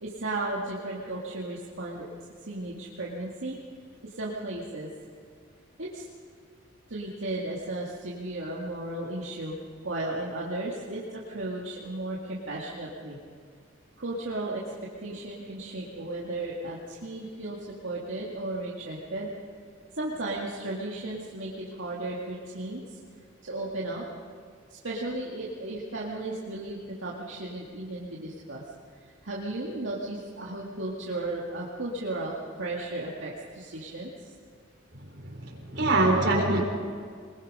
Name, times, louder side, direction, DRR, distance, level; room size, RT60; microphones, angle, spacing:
voice 1, 0.0-2.1 2.5-3.6 4.0-4.9 5.8-6.0 6.9-9.5 9.8-13.2 14.0-19.3 19.9-22.8 23.4-24.1 24.7-28.6 28.9-34.3, right 2 dB, 80° right, -4 dB, 2.1 m, -35 dB
voice 2, 35.0-36.6, right 2 dB, 60° right, 0 dB, 4.0 m, -25 dB
22.5 x 21.0 x 5.5 m, 2.1 s
head